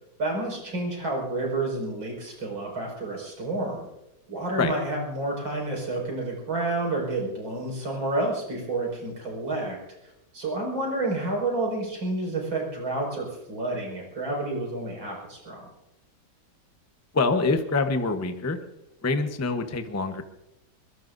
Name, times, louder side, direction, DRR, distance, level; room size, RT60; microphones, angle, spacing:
voice 1, 0.2-3.9 4.3-15.7, right 2 dB, 75° right, -1 dB, 6.4 m, -30 dB
voice 2, 17.1-18.6 19.0-20.2, left 3 dB, 15° left, 7 dB, 0.5 m, -25 dB
22.5 x 22.0 x 2.7 m, 0.92 s
omnidirectional pair, 2.2 m